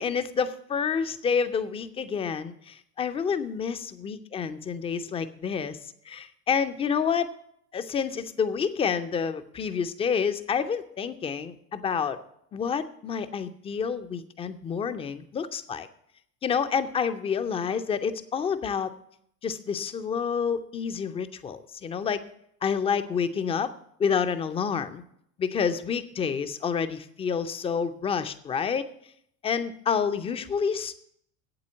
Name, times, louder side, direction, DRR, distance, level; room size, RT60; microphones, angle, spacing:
voice 1, 0.0-5.8 6.1-7.3 7.7-12.2 12.5-15.9 16.4-18.9 19.4-22.2 22.6-23.7 24.0-25.0 25.4-28.9 29.4-31.0, left 6 dB, 15° left, 11 dB, 0.4 m, -28 dB
8.5 x 7.7 x 7.3 m, 0.72 s
figure-of-eight pair, 75°, 47 cm